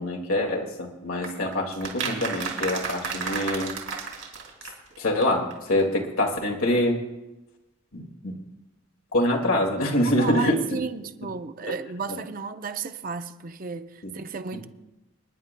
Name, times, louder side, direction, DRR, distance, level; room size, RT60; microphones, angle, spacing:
voice 1, 0.0-3.7 5.0-7.0 7.9-8.4 9.1-10.8 12.1-12.2, left 1 dB, 80° left, 2.0 m, -25 dB
sound 1, 1.2-5.0 5.2-5.3 5.5-5.6 5.8-5.9, right 5 dB, 70° right, 2.8 m, -32 dB
voice 2, 10.1-14.6, right 5 dB, 40° right, 0.5 m, -33 dB
29.5 x 10.5 x 2.2 m
head